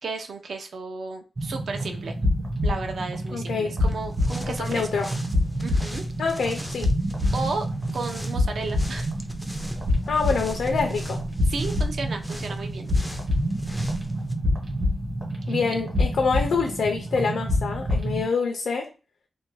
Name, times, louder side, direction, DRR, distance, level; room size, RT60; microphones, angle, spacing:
voice 1, 0.0-2.2 2.6-4.9 5.6-6.0 7.3-7.7 7.9-9.1 11.5-12.9 15.5-15.8, right 4 dB, 70° right, 5 dB, 0.5 m, -33 dB
sound 1, 1.4-18.3, left 1 dB, 40° right, 1.1 m, -27 dB
voice 2, 3.3-3.7 4.6-5.1 6.2-6.9 10.1-11.2 15.5-18.9, left 4 dB, 80° left, 3 dB, 0.4 m, -26 dB
sound 2, 3.8-14.3, equal, ahead, 0.3 m, -40 dB
2.5 x 2.1 x 3.1 m, 0.33 s
wide cardioid pair, 130°, 0 cm